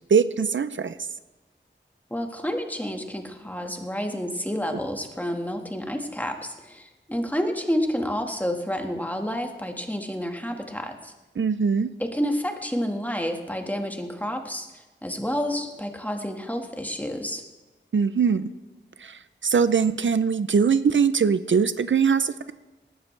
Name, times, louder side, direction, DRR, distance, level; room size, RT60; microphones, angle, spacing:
voice 1, 0.1-1.0 11.4-11.9 17.9-18.5 19.0-22.3, right 6 dB, 80° right, 13 dB, 0.5 m, -22 dB
voice 2, 2.1-11.1 12.0-17.4, equal, 10° left, 4 dB, 1.6 m, -29 dB
18.0 x 12.5 x 3.2 m, 1.1 s
wide cardioid pair, 50°, 19 cm